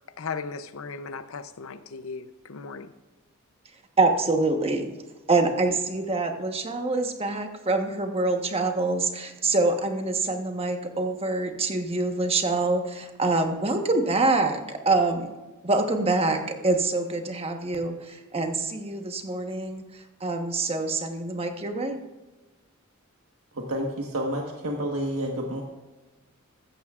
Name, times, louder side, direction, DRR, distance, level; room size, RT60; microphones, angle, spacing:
voice 1, 0.2-2.9, left 5 dB, 70° left, 12 dB, 0.7 m, -36 dB
voice 2, 4.0-4.9 5.3-15.3 15.6-19.8 20.2-22.0, right 3 dB, 30° right, 5 dB, 1.1 m, -25 dB
voice 3, 23.5-25.6, equal, 90° right, 0 dB, 1.4 m, -29 dB
15.0 x 13.0 x 2.5 m, 1.2 s
head